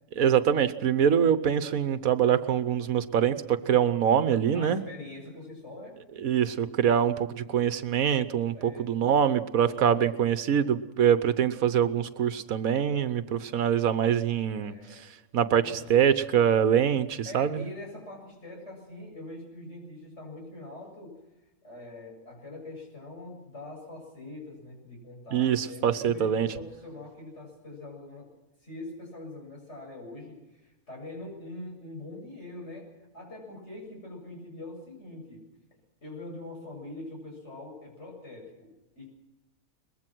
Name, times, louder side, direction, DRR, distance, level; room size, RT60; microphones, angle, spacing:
voice 1, 0.2-4.8 6.2-14.7 15.3-15.6 15.9-17.6 25.3-26.5, right 8 dB, 75° right, 13 dB, 1.3 m, -24 dB
voice 2, 4.5-6.0 8.5-9.2 9.6-10.1 14.6-15.1 15.6-15.9 17.2-21.2 21.6-28.3 28.6-35.5 36.0-39.1, left 2 dB, 50° left, -1 dB, 7.6 m, -43 dB
23.0 x 21.0 x 6.1 m, 1.0 s
omnidirectional pair, 1.5 m